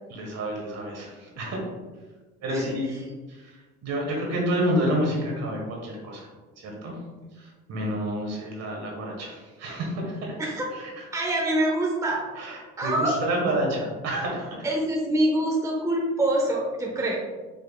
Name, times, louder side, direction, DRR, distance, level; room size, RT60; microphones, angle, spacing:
voice 1, 0.1-1.7 2.4-3.0 3.3-6.3 6.6-7.0 7.3-10.4 10.7-11.0 12.4-14.7 17.0-17.1, right 1 dB, 60° right, -1 dB, 1.4 m, -29 dB
voice 2, 2.5-3.0 10.4-10.7 11.1-12.2 12.8-13.2 14.6-17.2, right 1 dB, 10° right, -1 dB, 0.7 m, -25 dB
5.2 x 3.3 x 2.3 m, 1.3 s
cardioid pair, 100°, 30 cm